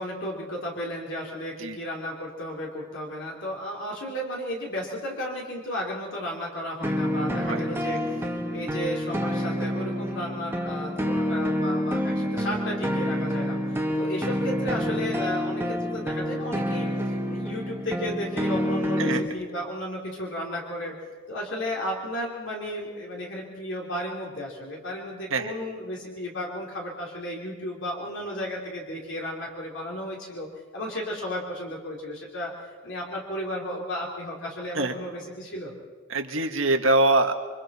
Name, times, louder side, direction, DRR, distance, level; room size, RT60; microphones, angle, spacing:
voice 1, 0.0-20.9 21.3-30.5 30.7-32.5 32.8-35.7, equal, 65° left, -3 dB, 3.1 m, -34 dB
sound 1, 6.8-19.3, equal, 10° right, 1.5 m, -28 dB
voice 2, 36.1-37.3, right 2 dB, 70° right, 5 dB, 1.7 m, -23 dB
28.0 x 24.0 x 4.3 m, 1.5 s
head